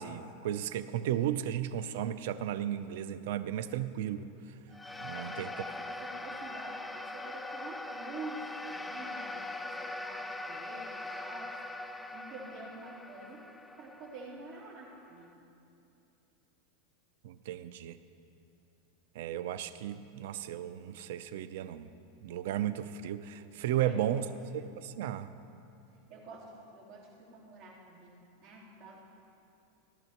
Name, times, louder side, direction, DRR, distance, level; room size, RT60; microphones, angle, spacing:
voice 1, 0.0-4.3 5.0-5.5 17.2-18.0 19.2-21.9 22.2-24.3 24.5-25.3, right 11 dB, 65° right, 13 dB, 0.5 m, -34 dB
sound 1, 4.7-15.3, left 2 dB, 5° left, 0.4 m, -42 dB
voice 2, 5.1-11.5 12.1-15.4 23.8-24.2 26.1-29.0, right 3 dB, 40° right, -6 dB, 3.2 m, -48 dB
17.5 x 11.5 x 3.0 m, 2.8 s
supercardioid pair, 160°, 0 cm